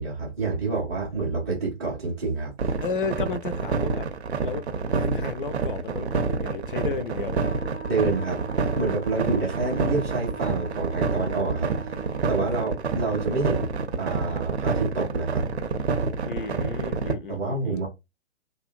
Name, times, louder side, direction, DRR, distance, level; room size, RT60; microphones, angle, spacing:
voice 1, 0.0-2.7 7.9-8.4 8.8-11.9 12.3-13.7 14.0-15.4 17.3-17.9, right 3 dB, 15° right, 0.4 m, -28 dB
sound 1, 2.6-17.1, right 4 dB, 65° right, 0.6 m, -27 dB
voice 2, 2.8-4.1 4.4-7.4 16.2-17.8, left 4 dB, 50° left, 0.4 m, -33 dB
Wind instrument woodwind instrument, 7.4-12.5, right 6 dB, 75° left, 0.8 m, -41 dB
2.6 x 2.1 x 2.4 m
figure-of-eight pair, 120°, 35 cm